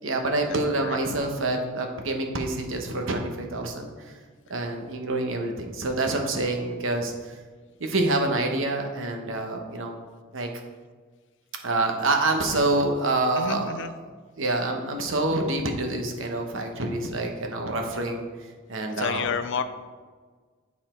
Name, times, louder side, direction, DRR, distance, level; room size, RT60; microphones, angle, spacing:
voice 1, 0.0-4.1 4.5-7.3 7.8-10.0 10.3-10.5 11.6-13.9 14.4-18.3 18.7-19.3, right 2 dB, 65° right, 3 dB, 1.0 m, -27 dB
voice 2, 13.4-13.9 19.0-19.6, left 6 dB, 60° left, 10 dB, 0.5 m, -29 dB
9.0 x 4.2 x 4.3 m, 1.5 s
head